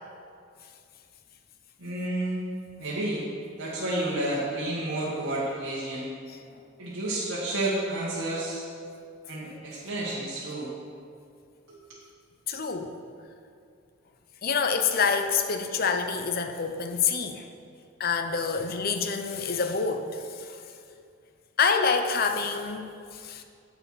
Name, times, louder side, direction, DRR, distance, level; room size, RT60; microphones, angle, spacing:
voice 1, 1.8-2.4 2.8-3.3 3.6-6.1 6.8-8.6 9.3-10.7 11.7-11.8, right 1 dB, 85° right, -9 dB, 1.9 m, -30 dB
voice 2, 12.5-12.9 14.4-17.5 18.0-20.6 21.6-23.4, left 5 dB, 45° left, 6 dB, 0.7 m, -27 dB
8.2 x 6.9 x 5.9 m, 2.4 s
head